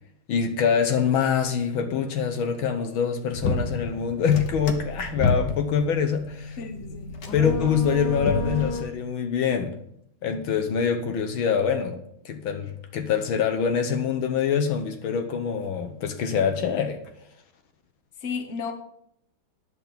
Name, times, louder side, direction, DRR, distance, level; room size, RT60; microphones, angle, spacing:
voice 1, 0.3-6.6 7.3-9.8 10.2-12.0 12.3-17.0, left 7 dB, 75° left, 1.8 m, -25 dB
sound 1, 3.3-8.8, left 3 dB, 60° left, 1.8 m, -29 dB
voice 2, 6.6-7.1 18.2-18.7, left 5 dB, 40° left, 1.6 m, -33 dB
10.5 x 6.1 x 8.6 m
omnidirectional pair, 2.3 m